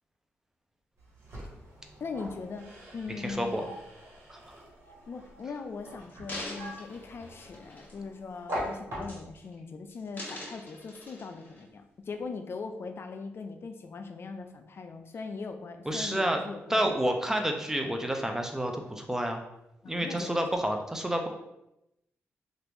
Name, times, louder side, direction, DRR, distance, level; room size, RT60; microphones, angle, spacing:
sound 1, 1.0-9.5, equal, 60° right, 1.4 m, -43 dB
voice 1, 2.0-3.7 5.1-17.0 19.8-20.4, left 4 dB, 55° left, 6 dB, 0.4 m, -40 dB
voice 2, 3.2-3.6 4.3-4.4 15.9-16.4 16.7-19.4 19.9-21.3, right 1 dB, 10° right, 4 dB, 0.5 m, -29 dB
sound 2, 5.2-5.4 6.0-8.1 8.5-8.7 9.0-9.6 9.9-11.6 12.2-12.3, left 1 dB, 35° left, 1.4 m, -44 dB
2.9 x 2.5 x 3.4 m, 0.86 s
cardioid pair, 65°, 5 cm